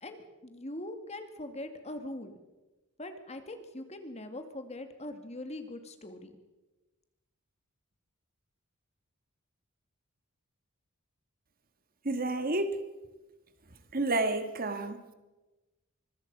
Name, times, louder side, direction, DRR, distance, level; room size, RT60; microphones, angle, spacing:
voice 1, 0.0-2.4 3.0-6.3, left 1 dB, 30° left, 7 dB, 2.2 m, -42 dB
voice 2, 12.1-12.8 13.9-15.1, right 2 dB, 40° right, 8 dB, 1.7 m, -30 dB
25.0 x 22.0 x 5.5 m, 1.1 s
head